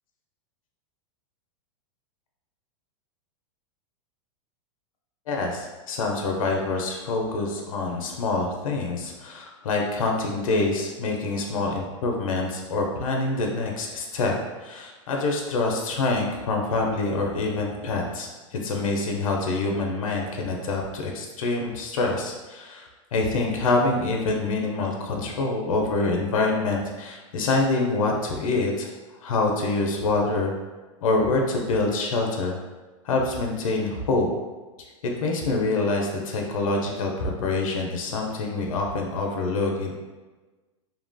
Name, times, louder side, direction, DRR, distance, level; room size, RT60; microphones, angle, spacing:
voice 1, 5.3-14.3 14.6-28.9 29.2-30.5 31.0-32.6 33.0-34.3 35.2-39.9, left 3 dB, 90° left, 1 dB, 0.5 m, -26 dB
2.8 x 2.2 x 2.5 m, 1.2 s
supercardioid pair, 150°, 17 cm